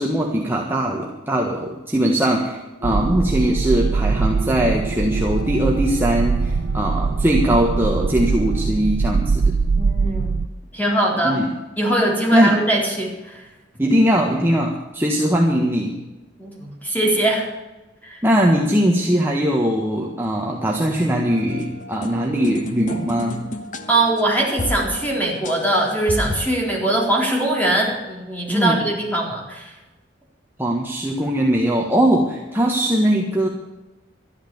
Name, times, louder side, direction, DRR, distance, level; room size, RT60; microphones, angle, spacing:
voice 1, 0.0-9.6 11.2-11.5 12.3-12.6 13.8-16.0 18.2-23.4 28.5-28.8 30.6-33.5, equal, 10° right, -1 dB, 1.5 m, -20 dB
sound 1, 2.8-10.5, right 4 dB, 40° right, 0.4 m, -22 dB
sound 2, 2.8-8.7, right 1 dB, 90° right, 2.3 m, -39 dB
voice 2, 9.8-10.4 10.7-11.4 11.8-13.4 16.4-17.5 18.0-18.2 23.9-29.7, right 1 dB, 10° left, -1 dB, 4.0 m, -21 dB
sound 3, 21.3-26.4, left 1 dB, 45° left, 1.3 m, -32 dB
12.5 x 11.5 x 7.1 m, 1.1 s
head